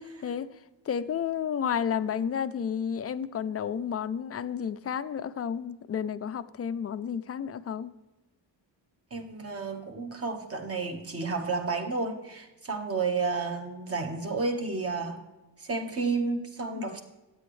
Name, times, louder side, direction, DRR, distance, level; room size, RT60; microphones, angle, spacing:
voice 1, 0.9-7.9 16.7-16.9, left 8 dB, 35° left, 13 dB, 0.4 m, -31 dB
voice 2, 9.1-15.2 15.6-17.0, right 4 dB, 30° right, 5 dB, 1.4 m, -31 dB
15.5 x 9.1 x 3.2 m, 1.1 s
wide cardioid pair, 175°, 44 cm